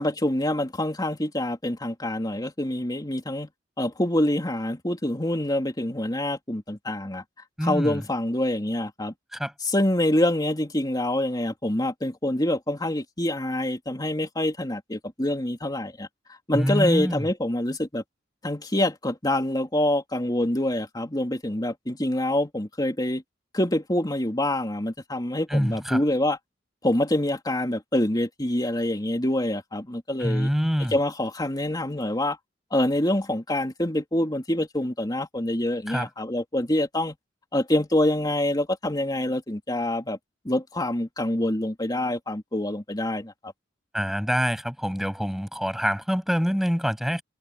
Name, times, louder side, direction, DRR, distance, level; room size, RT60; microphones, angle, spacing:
voice 1, 0.0-3.5 3.8-7.2 7.6-9.1 9.6-16.1 16.5-18.0 18.4-23.2 23.5-26.4 26.8-30.5 30.9-32.4 32.7-37.1 37.5-40.2 40.4-43.5, left 1 dB, 20° left, 3.0 m, -26 dB
voice 2, 7.6-8.0 9.3-9.5 16.5-17.2 25.5-26.0 30.2-31.0 35.9-36.1 43.9-47.2, equal, ahead, 6.6 m, -25 dB
head